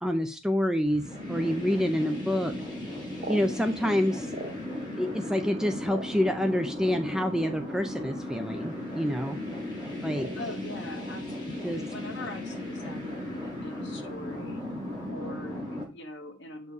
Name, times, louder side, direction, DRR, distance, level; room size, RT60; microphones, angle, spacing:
voice 1, 0.0-2.5 3.3-4.3 5.0-9.4 10.0-10.3 11.6-11.8, equal, 5° right, 6 dB, 0.5 m, -27 dB
sound 1, 0.9-15.8, left 1 dB, 20° left, 4.2 m, -36 dB
sound 2, 2.8-5.0 5.3-6.8 7.6-7.7 7.9-8.2 8.5-9.0 9.2-9.5 10.2-11.1 11.4-12.3 12.6-12.7 13.1-13.4 13.8-14.2, right 2 dB, 35° right, 0.9 m, -42 dB
voice 2, 10.3-14.6 15.1-16.7, left 2 dB, 55° left, 4 dB, 1.8 m, -43 dB
8.4 x 4.6 x 4.7 m, 0.35 s
head